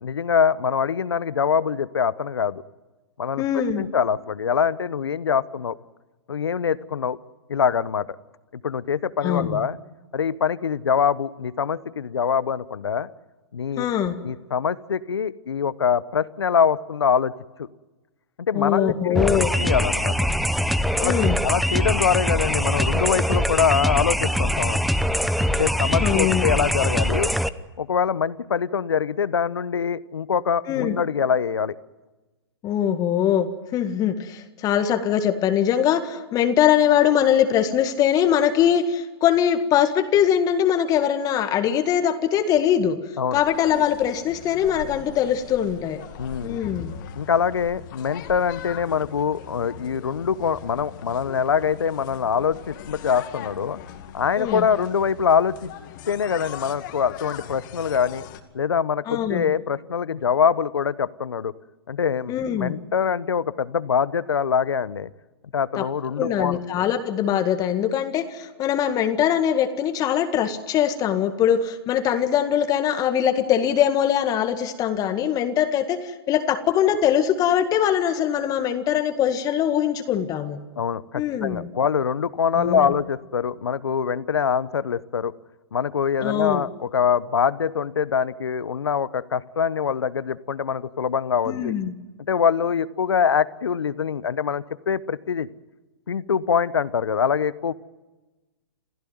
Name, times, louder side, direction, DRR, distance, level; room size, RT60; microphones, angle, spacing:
voice 1, 0.0-2.6 3.2-3.4 3.8-5.8 6.3-7.2 7.5-8.1 8.5-9.8 10.1-13.1 13.5-13.9 14.2-17.3 17.6-17.7 18.4-20.2 21.0-21.1 21.4-24.8 25.5-27.3 27.8-31.8 43.2-43.4 46.2-46.6 47.2-53.8 54.1-55.7 56.1-58.2 58.5-61.5 61.9-65.1 65.5-66.8 80.8-85.3 85.7-91.7 92.3-95.5 96.1-97.7, left 7 dB, 80° left, 18 dB, 1.0 m, -24 dB
voice 2, 3.4-3.8 9.2-9.6 13.8-14.1 18.5-19.5 21.0-21.4 26.0-26.5 30.7-31.0 32.6-46.0 46.4-46.9 54.4-54.7 59.1-59.5 62.3-62.7 65.7-65.9 66.2-80.6 81.1-81.7 82.6-82.9 86.2-86.6 91.5-91.9, left 9 dB, 25° left, 8 dB, 1.8 m, -22 dB
sound 1, 19.1-27.5, equal, ahead, 0.8 m, -23 dB
sound 2, 43.3-58.4, left 9 dB, 50° left, 2.4 m, -40 dB
28.0 x 15.5 x 9.5 m, 1.2 s
hypercardioid pair, 120°, 13 cm